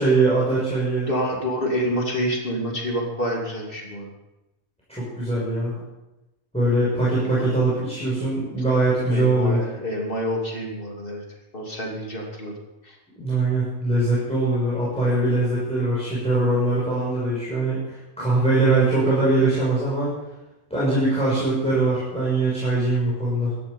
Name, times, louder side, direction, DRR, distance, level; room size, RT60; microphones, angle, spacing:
voice 1, 0.0-1.1 4.9-5.7 6.5-9.6 13.1-20.1 20.7-23.5, right 2 dB, 5° left, -9 dB, 6.8 m, -22 dB
voice 2, 1.1-4.1 6.6-6.7 7.1-7.5 9.1-11.2 11.5-12.5 12.8-13.0, equal, 35° left, -1 dB, 3.2 m, -28 dB
16.5 x 12.5 x 5.5 m, 0.98 s
omnidirectional pair, 1.7 m